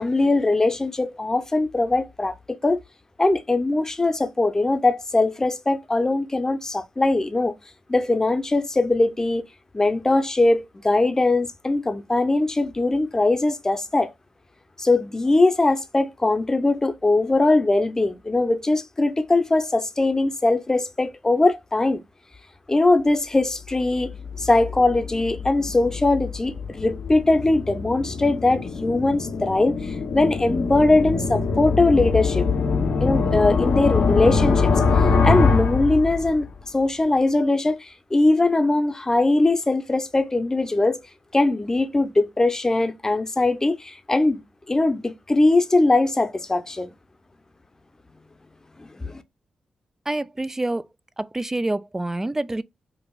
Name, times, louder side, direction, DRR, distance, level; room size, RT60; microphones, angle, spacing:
voice 1, 0.0-2.8 3.2-7.5 7.9-9.4 9.7-14.1 14.8-22.0 22.7-24.1 24.4-32.4 33.0-34.7 35.0-36.5 36.7-41.0 41.3-44.4 44.7-46.9 48.8-49.2, left 2 dB, 25° left, 0.7 m, -21 dB
sound 1, 23.7-36.6, left 4 dB, 80° left, 1.0 m, -24 dB
voice 2, 50.1-50.8 51.2-52.6, right 2 dB, 20° right, 0.4 m, -27 dB
4.7 x 2.4 x 2.3 m
supercardioid pair, 50°, 2 cm